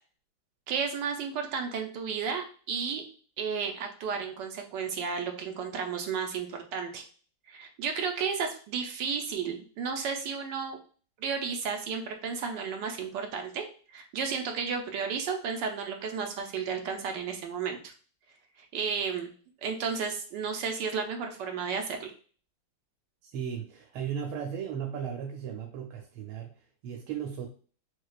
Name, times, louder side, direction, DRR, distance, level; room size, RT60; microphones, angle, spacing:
voice 1, 0.7-3.1 3.4-7.0 7.5-10.8 11.2-13.7 13.9-17.9 18.6-19.3 19.6-22.1, right 6 dB, 70° right, 3 dB, 1.2 m, -33 dB
voice 2, 23.2-27.5, right 8 dB, 85° right, 2 dB, 1.5 m, -36 dB
6.2 x 2.3 x 2.3 m, 0.40 s
omnidirectional pair, 2.3 m